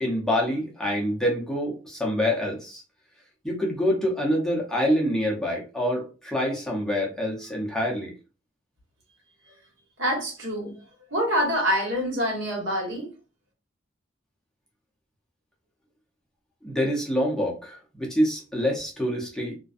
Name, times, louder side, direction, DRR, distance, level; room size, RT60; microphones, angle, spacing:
voice 1, 0.0-2.8 3.4-8.1 16.6-19.5, equal, 5° left, 0.6 m, -26 dB
voice 2, 10.0-10.8 11.1-13.1, equal, 80° right, 1.3 m, -26 dB
2.4 x 2.2 x 2.4 m
head